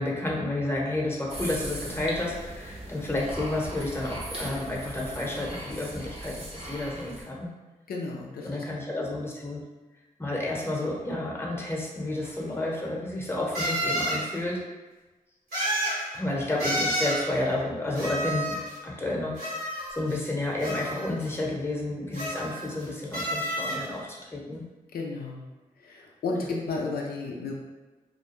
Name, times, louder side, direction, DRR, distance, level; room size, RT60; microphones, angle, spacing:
voice 1, 0.0-7.5 8.4-9.6 10.2-14.6 16.1-18.6 18.8-24.6, left 2 dB, 15° left, -2 dB, 0.8 m, -31 dB
sound 1, 1.3-7.2, right 1 dB, 40° right, 0.7 m, -39 dB
voice 2, 7.9-8.9 24.9-25.4 25.8-27.6, left 3 dB, 90° left, -2 dB, 0.4 m, -33 dB
sound 2, 12.2-12.3 13.5-14.2 15.5-16.0 16.6-17.2 18.0-18.8 19.4-20.2 20.6-21.2 22.1-22.8 23.1-23.8, equal, 90° right, 1.2 m, -30 dB
2.4 x 2.2 x 2.9 m, 1.2 s
cardioid pair, 45°, 15 cm